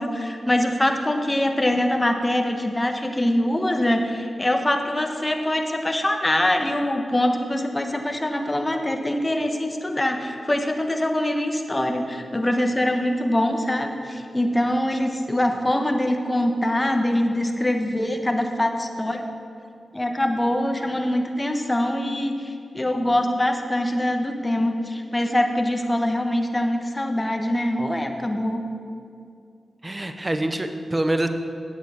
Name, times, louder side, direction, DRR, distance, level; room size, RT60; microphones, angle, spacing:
voice 1, 0.0-19.3 19.9-28.6, left 1 dB, 20° left, 5 dB, 1.2 m, -23 dB
voice 2, 29.8-31.3, right 1 dB, 25° right, 8 dB, 0.9 m, -25 dB
9.5 x 8.2 x 6.3 m, 2.3 s
cardioid pair, 50°, 0 cm